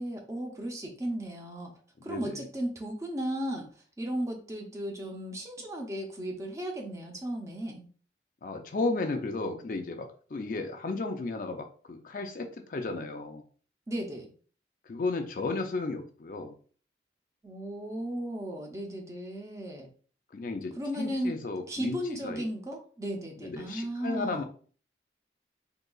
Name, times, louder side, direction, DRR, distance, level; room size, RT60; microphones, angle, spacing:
voice 1, 0.0-1.7 2.0-3.7 4.0-7.9 13.9-14.3 17.4-19.9 20.8-21.4 21.7-24.4, equal, 15° right, 1 dB, 0.6 m, -35 dB
voice 2, 2.1-2.4 8.4-13.4 14.9-16.5 20.3-22.0 22.2-22.4 23.4-24.4, left 3 dB, 50° left, 5 dB, 0.4 m, -34 dB
3.8 x 2.9 x 2.3 m, 0.42 s
head